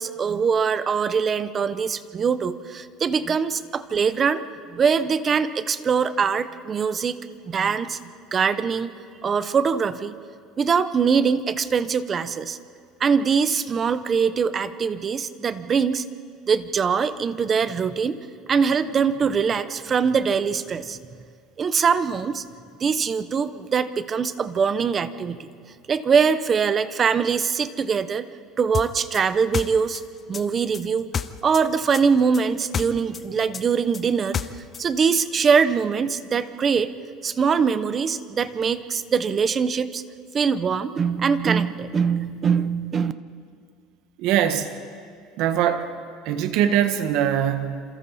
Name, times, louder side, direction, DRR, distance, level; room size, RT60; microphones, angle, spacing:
voice 1, 0.0-4.4 4.7-7.2 7.5-8.0 8.3-8.9 9.2-10.1 10.6-12.6 13.0-16.0 16.5-18.2 18.5-21.0 21.6-22.4 22.8-25.5 25.9-28.3 28.6-30.0 30.3-31.1 31.4-36.9 37.2-40.0 40.3-43.1, right 6 dB, 25° right, 13 dB, 0.8 m, -22 dB
sound 1, 28.7-31.7 31.9-34.9, left 7 dB, 25° left, 0.6 m, -30 dB
voice 2, 44.2-44.7 45.4-45.9 46.2-47.8, right 10 dB, 60° right, 8 dB, 1.5 m, -22 dB
28.5 x 27.5 x 4.2 m, 2.2 s
cardioid pair, 155°, 0 cm